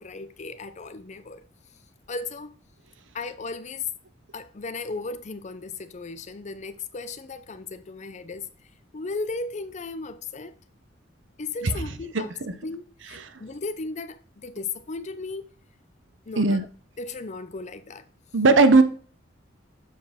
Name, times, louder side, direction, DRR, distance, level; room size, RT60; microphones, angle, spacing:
voice 1, 0.0-1.4 2.1-2.5 3.1-3.9 4.3-8.5 8.9-10.6 11.4-12.3 12.6-15.5 16.3-16.7 17.0-18.0, left 3 dB, 40° left, 0.5 m, -35 dB
voice 2, 12.1-12.5 16.4-16.6 18.3-18.8, right 3 dB, 75° right, 0.8 m, -18 dB
7.2 x 4.5 x 3.5 m
head